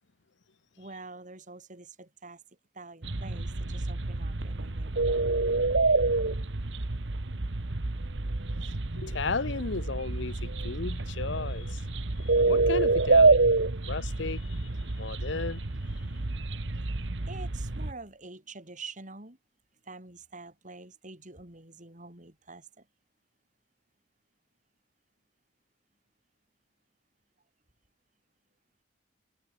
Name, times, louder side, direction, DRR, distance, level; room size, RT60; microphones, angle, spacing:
voice 1, 0.8-2.4 2.7-5.2 17.3-19.4 19.8-22.9, right 3 dB, 40° right, 4.5 m, -46 dB
sound 1, 3.0-17.9, right 3 dB, 70° right, 1.3 m, -27 dB
voice 2, 8.9-11.8 12.2-13.5 13.9-14.7 15.0-15.6, left 4 dB, 70° left, 0.9 m, -35 dB
head